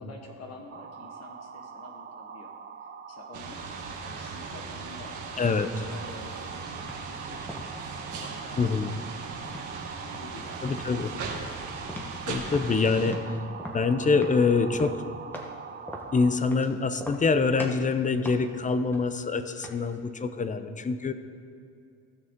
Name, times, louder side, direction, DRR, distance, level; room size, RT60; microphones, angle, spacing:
voice 1, 0.0-2.5 2.8-3.6 4.0-8.9 9.2-9.7 10.0-11.1 20.4-20.7, left 2 dB, 55° left, 2 dB, 1.3 m, -48 dB
sound 1, 0.7-16.4, right 6 dB, 35° right, 0.6 m, -43 dB
sound 2, 3.3-13.1, right 4 dB, 75° right, 1.4 m, -39 dB
voice 2, 5.4-5.9 8.6-8.9 10.6-11.1 12.3-13.4 13.7-15.0 16.1-21.1, left 4 dB, 25° left, 11 dB, 0.6 m, -25 dB
sound 3, 6.8-7.0 7.5-8.4 8.8-9.7 10.1-10.4 10.7-10.9 11.3-12.2 12.5-15.6 15.9-16.7 17.0-17.3 17.6-17.9 18.2-19.9, left 1 dB, 5° left, 1.2 m, -41 dB
15.5 x 6.1 x 3.7 m, 2.4 s
cardioid pair, 90°, 30 cm